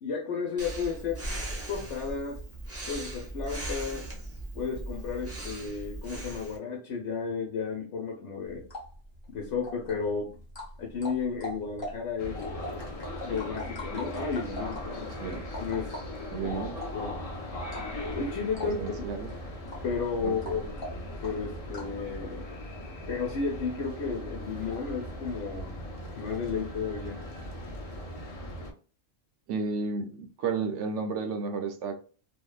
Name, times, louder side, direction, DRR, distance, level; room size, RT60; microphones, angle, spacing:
voice 1, 0.0-1.2 1.7-2.4 2.9-4.1 4.5-8.7 9.3-10.4 10.8-12.4 13.2-15.9 16.4-16.5 16.9-17.2 18.1-18.8 19.8-20.6 21.2-22.5 23.1-25.8 26.1-27.2, left 5 dB, 70° left, 0 dB, 1.0 m, -33 dB
Breathing, 0.6-6.6, right 1 dB, 20° right, 0.4 m, -38 dB
sound 1, 8.5-22.0, equal, 25° left, 0.8 m, -43 dB
sound 2, 12.2-28.7, left 1 dB, 45° left, 0.5 m, -39 dB
voice 2, 16.3-16.8 18.6-19.3 20.2-20.6 29.5-32.0, right 5 dB, 70° right, 6 dB, 0.8 m, -32 dB
2.7 x 2.1 x 2.3 m, 0.39 s
omnidirectional pair, 1.3 m